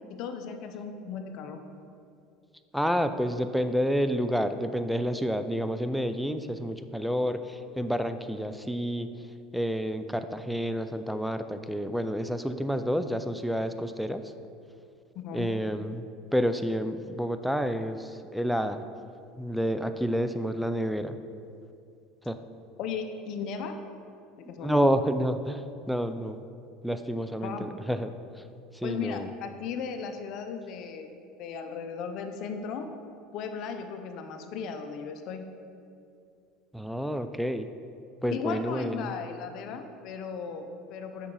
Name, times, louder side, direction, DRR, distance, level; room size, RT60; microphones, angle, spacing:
voice 1, 0.1-1.6 15.1-15.5 22.8-23.8 24.4-24.9 27.4-27.7 28.8-31.1 31.4-32.9 33.3-35.5 38.3-41.3, left 6 dB, 60° left, 7 dB, 0.6 m, -36 dB
voice 2, 2.7-9.1 9.5-14.2 15.3-16.0 16.3-18.8 19.4-21.2 22.3-22.4 24.6-26.4 26.8-28.4 28.7-29.3 36.7-37.7 38.2-39.1, equal, ahead, 10 dB, 0.4 m, -29 dB
8.2 x 5.8 x 3.8 m, 2.5 s
supercardioid pair, 115°, 0 cm